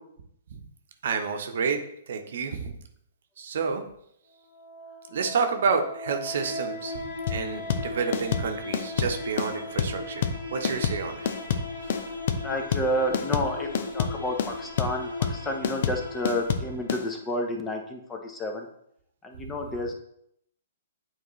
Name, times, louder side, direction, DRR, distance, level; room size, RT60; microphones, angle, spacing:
voice 1, 1.0-1.8 2.1-2.7 3.4-3.8 5.1-7.0 7.3-10.2 10.5-11.3, right 5 dB, 60° right, 5 dB, 0.9 m, -29 dB
sound 1, 4.3-17.3, left 2 dB, 75° left, 2.6 m, -38 dB
sound 2, 7.3-17.0, left 7 dB, 50° left, 0.6 m, -28 dB
voice 2, 12.4-18.7 19.2-19.9, left 1 dB, 15° left, 3 dB, 1.0 m, -30 dB
9.4 x 4.2 x 3.2 m, 0.73 s
figure-of-eight pair, 120°, 0 cm